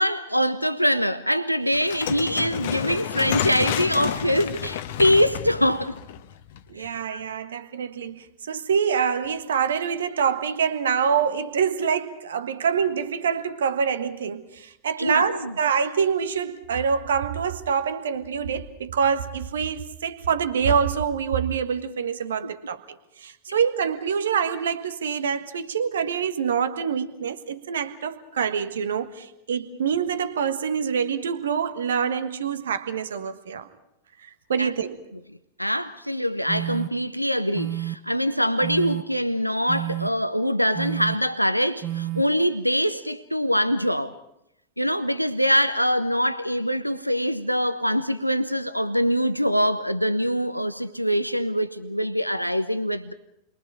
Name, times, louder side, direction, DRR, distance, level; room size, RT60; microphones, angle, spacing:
voice 1, 0.0-6.0 6.8-7.2 15.0-15.5 22.4-22.5 34.6-34.7 35.6-44.2 44.8-53.1, equal, 90° left, 0.7 m, -24 dB
sound 1, 1.7-6.9, left 10 dB, 55° left, 1.1 m, -30 dB
voice 2, 6.7-22.8 23.2-33.7 34.2-35.0, right 7 dB, 65° right, 1.5 m, -26 dB
sound 2, 36.5-36.9 37.5-37.9 38.6-39.0 39.7-40.1 40.7-41.2 41.8-42.2, right 14 dB, 35° right, 1.2 m, -29 dB
29.5 x 23.0 x 4.9 m
figure-of-eight pair, 90°, 0 cm